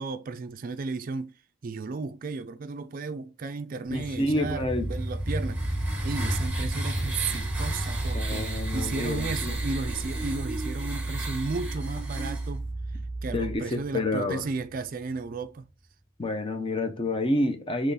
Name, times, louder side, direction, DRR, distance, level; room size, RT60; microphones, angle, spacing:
voice 1, 0.0-1.3 1.6-12.6 13.2-15.7, right 4 dB, 40° right, 0.4 m, -34 dB
sound 1, 3.9-15.4, right 1 dB, 85° left, 1.4 m, -34 dB
voice 2, 3.9-4.9 8.1-9.6 13.3-14.4 16.2-17.9, left 1 dB, 25° left, 0.6 m, -28 dB
sound 2, 5.0-12.5, right 2 dB, 10° right, 0.9 m, -38 dB
sound 3, 6.9-13.6, right 2 dB, 60° left, 1.5 m, -34 dB
3.8 x 3.1 x 4.0 m
head